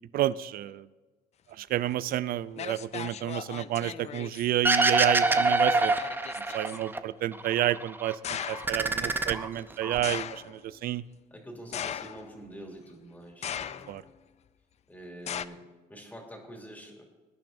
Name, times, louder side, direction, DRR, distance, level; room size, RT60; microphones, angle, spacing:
voice 1, 0.1-0.9 1.6-5.9 6.3-8.2 8.5-11.0 13.9-14.0, right 13 dB, 60° right, 17 dB, 0.5 m, -30 dB
sound 1, 2.1-2.2 2.6-4.5 5.2-6.8 8.2-8.8 10.0-10.6 11.7-12.5 13.4-14.1 15.3-15.5, left 9 dB, 40° left, 0.5 m, -37 dB
sound 2, 4.6-7.0 7.3-8.1 8.5-10.0, right 2 dB, 10° right, 0.7 m, -25 dB
voice 2, 6.6-6.9 9.0-9.9 11.3-14.0 14.9-15.6 15.9-17.0, equal, 10° left, 1 dB, 3.0 m, -46 dB
20.5 x 10.5 x 2.7 m, 1.3 s
cardioid pair, 110°, 17 cm